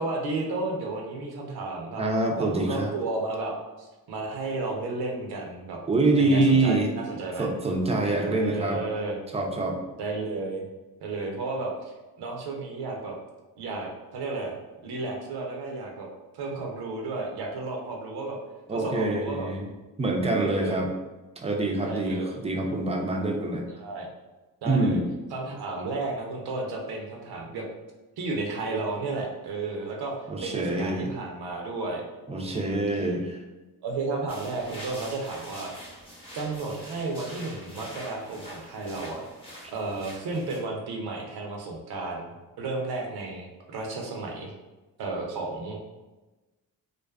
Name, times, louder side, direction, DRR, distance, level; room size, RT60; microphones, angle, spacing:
voice 1, 0.0-2.0 2.4-5.8 6.2-7.5 8.1-9.2 10.0-10.7 11.0-13.2 13.6-14.6 14.8-16.1 16.4-18.4 18.7-19.5 20.4-20.8 21.8-22.4 23.7-24.1 24.6-25.0 25.3-27.7 28.2-30.1 30.4-32.0 32.4-32.7 33.8-35.7 36.3-39.2 39.7-42.3 42.6-44.5 45.0-45.8, right 3 dB, 85° right, 0 dB, 0.6 m, -33 dB
voice 2, 2.0-2.9 5.9-6.9 7.4-8.8 9.3-9.8 18.7-19.7 20.0-20.9 21.4-23.7 24.7-25.0 30.3-31.1 32.3-33.4, right 2 dB, 15° right, 1 dB, 0.4 m, -25 dB
sound 1, 34.3-40.6, equal, 15° left, 0.8 m, -44 dB
2.5 x 2.3 x 2.3 m, 1.1 s
cardioid pair, 70°, 37 cm